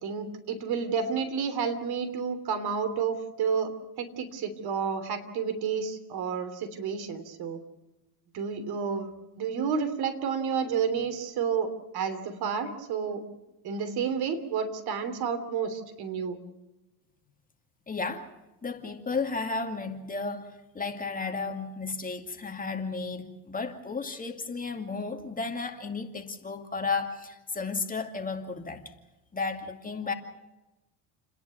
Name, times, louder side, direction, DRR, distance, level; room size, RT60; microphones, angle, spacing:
voice 1, 0.0-3.7 4.0-7.6 8.3-13.2 13.6-16.4, right 6 dB, 55° right, 3.2 m, -30 dB
voice 2, 17.9-18.3 18.6-28.8 29.3-30.1, left 4 dB, 20° left, 2.5 m, -33 dB
30.0 x 10.5 x 9.6 m
supercardioid pair, 105°, 45 cm